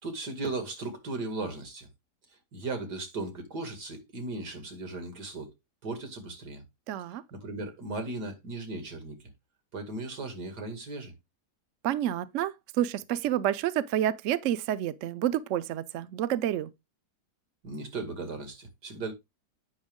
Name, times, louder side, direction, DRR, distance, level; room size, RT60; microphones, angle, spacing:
voice 1, 0.0-1.9 2.5-5.5 5.8-6.6 7.3-9.2 9.7-11.1 17.6-19.1, right 2 dB, 85° right, 2.7 m, -37 dB
voice 2, 6.9-7.2 11.8-16.7, right 11 dB, 65° right, 0.8 m, -29 dB
8.7 x 6.0 x 3.6 m
omnidirectional pair, 1.7 m